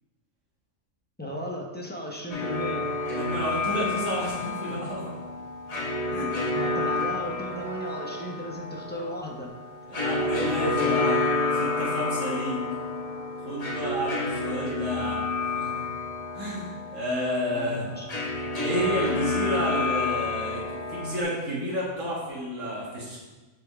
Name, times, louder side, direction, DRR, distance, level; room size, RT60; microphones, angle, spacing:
voice 1, 1.2-2.9 6.5-9.5 17.5-18.0, equal, 10° left, -2 dB, 0.5 m, -35 dB
sound 1, 2.3-21.2, left 3 dB, 30° left, 0.9 m, -29 dB
voice 2, 3.1-5.1 6.1-6.3 9.9-12.6 13.4-15.8 16.3-17.9 18.6-23.2, equal, 65° right, -5 dB, 2.1 m, -31 dB
5.5 x 4.5 x 4.6 m, 1.2 s
omnidirectional pair, 1.5 m